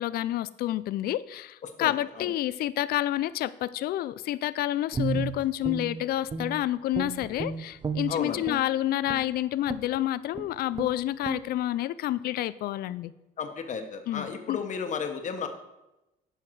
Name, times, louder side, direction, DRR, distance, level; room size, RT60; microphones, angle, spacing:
voice 1, 0.0-13.1 14.1-14.6, left 14 dB, 65° left, 18 dB, 0.4 m, -29 dB
Guitar, 4.9-6.6 6.9-8.7 9.1-9.3 9.7-10.0 10.3-10.5 10.7-10.9 11.2-11.4, right 4 dB, 25° right, 0.9 m, -33 dB
voice 2, 8.1-8.4 13.4-15.5, left 6 dB, 45° left, 6 dB, 1.3 m, -33 dB
11.5 x 5.8 x 4.7 m, 0.95 s
cardioid pair, 110°, 17 cm